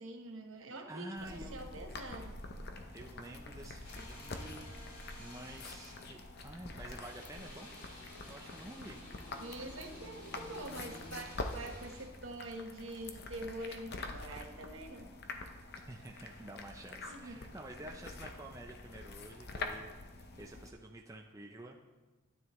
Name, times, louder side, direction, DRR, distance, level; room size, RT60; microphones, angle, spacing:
voice 1, 0.0-2.4 9.4-15.1 17.1-17.4, right 1 dB, 65° right, 3 dB, 1.0 m, -45 dB
voice 2, 0.9-1.7 2.9-4.7 5.2-7.7 8.3-9.0 15.9-21.8, right 1 dB, 15° right, 1 dB, 0.4 m, -49 dB
sound 1, 1.2-20.7, left 3 dB, 45° left, 0.7 m, -46 dB
sound 2, 3.8-6.2 7.0-12.0, left 2 dB, 85° left, 3.3 m, -52 dB
12.5 x 9.6 x 3.0 m, 1.2 s
head